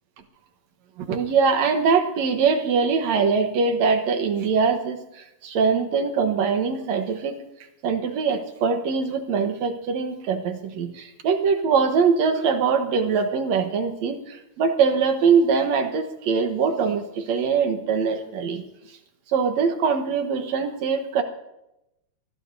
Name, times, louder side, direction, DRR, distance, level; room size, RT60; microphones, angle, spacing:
voice 1, 1.0-7.4 7.8-18.6 19.3-21.2, right 5 dB, 70° right, 6 dB, 2.4 m, -22 dB
23.5 x 19.5 x 2.7 m, 0.89 s
omnidirectional pair, 3.4 m